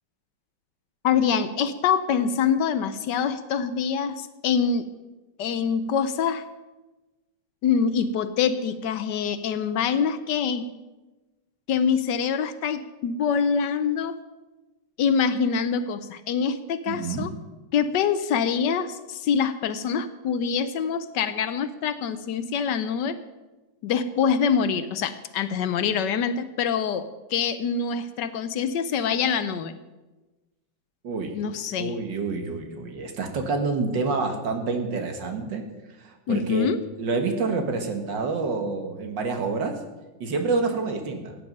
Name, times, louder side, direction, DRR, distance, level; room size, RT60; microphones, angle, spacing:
voice 1, 1.0-4.9 5.4-6.4 7.6-10.7 11.7-14.2 15.0-17.3 17.7-23.2 23.8-29.7 31.3-31.9 36.3-36.8, left 6 dB, 70° left, 12 dB, 1.3 m, -25 dB
voice 2, 16.9-17.3 31.0-31.4 31.8-35.6 36.0-36.7 37.0-39.8 40.2-41.4, right 4 dB, 70° right, 4 dB, 2.1 m, -28 dB
16.0 x 8.6 x 5.3 m, 1.1 s
omnidirectional pair, 2.0 m